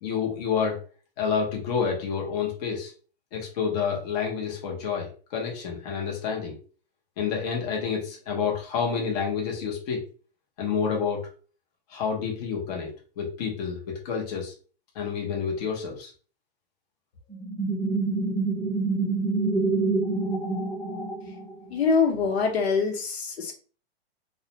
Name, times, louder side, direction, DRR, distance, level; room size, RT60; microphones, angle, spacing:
voice 1, 0.0-0.8 1.2-2.9 3.3-6.6 7.2-10.0 10.6-11.3 11.9-12.9 13.2-14.5 14.9-16.1, left 6 dB, 40° left, -1 dB, 0.7 m, -29 dB
sound 1, 17.3-21.8, right 3 dB, ahead, 0.8 m, -27 dB
voice 2, 21.7-23.5, left 5 dB, 75° left, 1 dB, 0.9 m, -24 dB
2.4 x 2.1 x 2.8 m, 0.39 s
hypercardioid pair, 160°, 32 cm